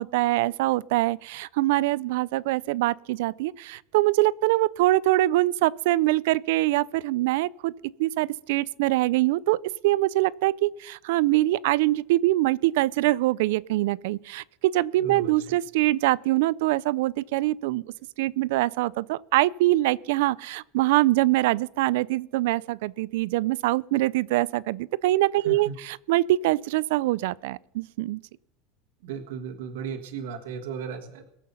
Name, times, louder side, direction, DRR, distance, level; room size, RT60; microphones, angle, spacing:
voice 1, 0.0-9.6 9.8-17.8 18.2-28.2, right 17 dB, 70° right, 0.4 m, -24 dB
voice 2, 15.0-15.3 25.4-25.7 29.0-31.3, right 6 dB, 90° right, 1.6 m, -35 dB
22.0 x 7.5 x 5.6 m
supercardioid pair, 160°, 0 cm